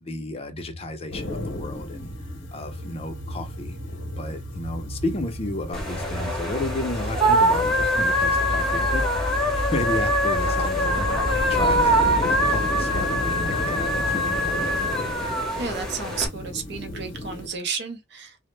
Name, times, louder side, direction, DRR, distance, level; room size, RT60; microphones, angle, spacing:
voice 1, 0.0-2.1 2.5-3.8 4.1-15.2, left 2 dB, 30° left, 0.5 m, -33 dB
sound 1, 0.5-17.6, equal, 80° right, 1.1 m, -34 dB
sound 2, 1.1-17.5, left 1 dB, 80° left, 0.7 m, -36 dB
sound 3, 5.7-16.3, equal, ahead, 0.8 m, -23 dB
voice 2, 15.6-18.4, right 5 dB, 60° right, 0.6 m, -32 dB
2.0 x 2.0 x 3.0 m
head